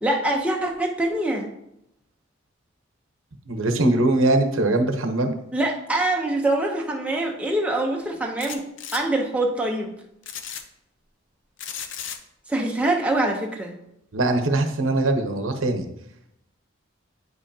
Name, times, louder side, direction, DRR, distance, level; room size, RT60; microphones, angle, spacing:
voice 1, 0.0-1.5 5.5-8.6 8.9-9.9 12.5-13.8, right 1 dB, 5° right, -1 dB, 0.7 m, -24 dB
voice 2, 3.5-5.3 14.1-15.9, right 2 dB, 75° right, 6 dB, 0.9 m, -21 dB
sound 1, 8.4-9.0 10.2-10.6 11.6-12.2, left 8 dB, 65° left, 0.6 m, -34 dB
9.3 x 5.5 x 2.8 m, 0.80 s
head